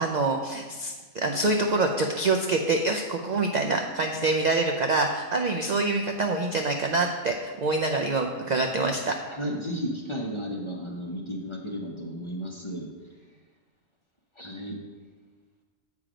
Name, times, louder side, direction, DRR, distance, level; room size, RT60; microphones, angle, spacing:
voice 1, 0.0-9.1, right 3 dB, 65° right, 3 dB, 0.4 m, -26 dB
voice 2, 9.3-12.9 14.4-14.8, equal, 30° left, 0 dB, 0.7 m, -33 dB
7.5 x 4.8 x 5.0 m, 1.4 s
omnidirectional pair, 1.4 m